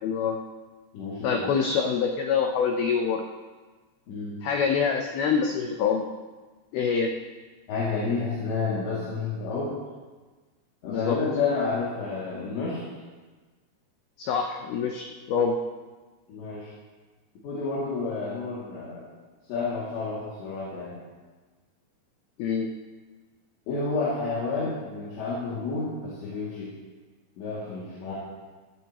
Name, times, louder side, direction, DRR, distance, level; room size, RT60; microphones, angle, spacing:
voice 1, 0.0-0.4 1.2-3.2 4.4-6.0 6.7-7.1 10.9-11.2 14.2-15.6 22.4-22.7 24.6-24.7, left 6 dB, 85° left, 3 dB, 2.1 m, -25 dB
voice 2, 0.9-1.5 4.1-4.4 7.7-9.8 10.8-12.8 16.3-16.7 17.4-19.0 19.5-21.0 23.7-26.7 27.4-28.1, left 4 dB, 70° left, -8 dB, 4.7 m, -30 dB
16.0 x 15.5 x 3.0 m, 1.3 s
omnidirectional pair, 5.5 m